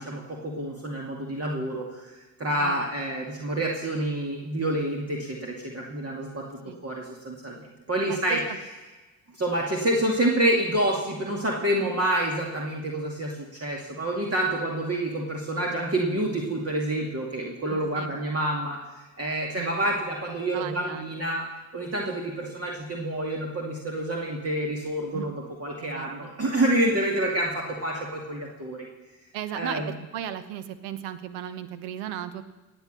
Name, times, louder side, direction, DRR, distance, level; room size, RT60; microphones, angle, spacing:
voice 1, 0.0-6.4 6.8-8.4 9.3-21.4 21.7-28.9 29.5-29.9, right 1 dB, 35° right, -1 dB, 2.5 m, -28 dB
voice 2, 17.7-18.1 19.5-19.7 20.5-21.2 25.1-25.3 25.8-26.3 29.3-32.4, right 10 dB, 80° right, 13 dB, 1.0 m, -36 dB
18.0 x 8.3 x 6.8 m, 1.2 s
hypercardioid pair, 50°, 41 cm